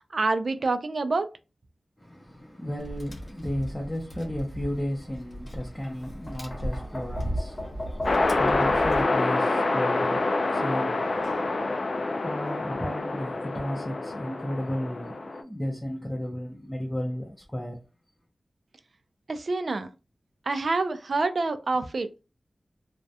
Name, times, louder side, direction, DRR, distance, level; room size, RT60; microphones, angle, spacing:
voice 1, 0.1-1.3 19.3-19.9 20.5-22.1, right 3 dB, 65° right, 0.3 m, -27 dB
voice 2, 2.0-17.8, equal, 10° left, 0.5 m, -34 dB
Tap, 2.8-9.0, equal, 45° left, 0.8 m, -35 dB
sound 1, 8.0-15.4, left 2 dB, 65° left, 0.3 m, -26 dB
2.3 x 2.1 x 2.7 m
wide cardioid pair, 100°, 0 cm